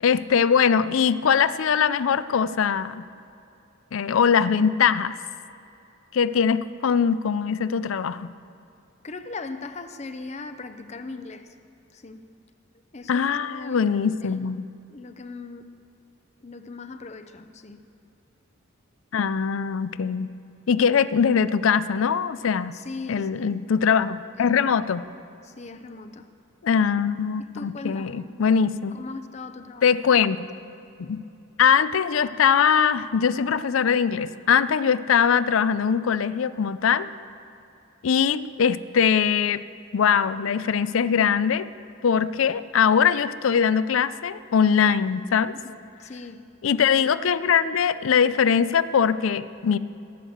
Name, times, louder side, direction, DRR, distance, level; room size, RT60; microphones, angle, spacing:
voice 1, 0.0-3.0 3.9-5.2 6.1-8.3 13.1-14.6 19.1-20.3 20.7-22.7 23.1-25.0 26.6-29.0 29.8-30.5 31.0-31.2 31.6-37.1 38.0-39.6 39.9-41.7 42.0-45.5 46.6-49.8, left 7 dB, 75° left, 15 dB, 0.4 m, -22 dB
voice 2, 9.0-11.6 11.9-12.3 12.9-14.4 14.9-15.7 16.4-17.9 22.7-23.6 24.4-24.9 25.4-26.3 27.5-28.3 28.9-29.9 45.6-46.4, left 3 dB, 35° left, 9 dB, 0.6 m, -39 dB
18.0 x 6.6 x 7.9 m, 2.7 s
head